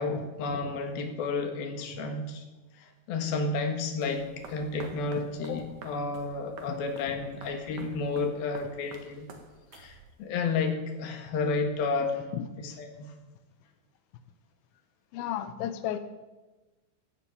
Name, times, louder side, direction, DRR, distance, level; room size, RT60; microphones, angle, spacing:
voice 1, 0.0-2.4 2.8-9.3 9.7-12.2 12.6-13.1, left 4 dB, 60° left, 4 dB, 3.1 m, -31 dB
sound 1, 4.0-10.3, right 4 dB, 55° right, 2.2 m, -49 dB
voice 2, 15.1-16.0, left 11 dB, 85° left, 9 dB, 2.1 m, -32 dB
16.0 x 8.4 x 8.7 m, 1.1 s
omnidirectional pair, 5.6 m